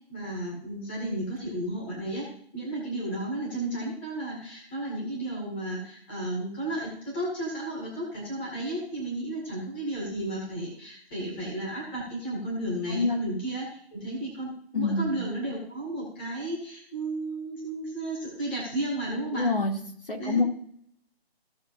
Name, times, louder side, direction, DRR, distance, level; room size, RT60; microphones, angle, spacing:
voice 1, 0.1-2.3 2.5-19.5 20.2-20.4, right 1 dB, 10° left, -5 dB, 1.9 m, -33 dB
voice 2, 14.7-15.2 19.3-19.7 20.1-20.5, left 3 dB, 60° left, 0 dB, 2.6 m, -26 dB
16.5 x 6.4 x 2.6 m, 0.63 s
figure-of-eight pair, 170°, 32 cm